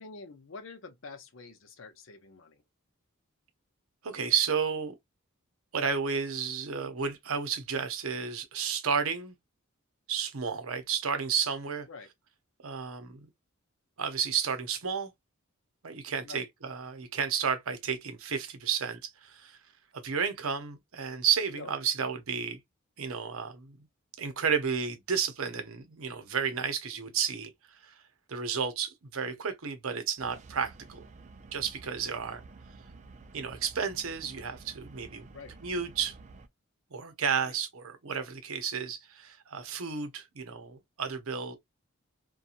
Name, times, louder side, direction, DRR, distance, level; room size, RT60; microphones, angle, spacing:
voice 1, 0.0-2.6 11.9-12.1 16.2-16.5 21.5-21.7 35.3-35.5 37.4-37.5, left 4 dB, 60° left, 0.6 m, -47 dB
voice 2, 4.0-5.0 5.7-9.4 10.1-11.9 12.6-13.3 14.0-15.1 15.8-19.6 19.9-22.6 23.0-23.8 24.2-28.0 28.3-31.1 31.5-32.4 33.3-35.3 35.6-36.2 36.9-41.5, right 6 dB, 75° right, 0.7 m, -32 dB
sound 1, 30.2-36.5, right 3 dB, 30° right, 0.3 m, -51 dB
2.8 x 2.3 x 2.4 m
head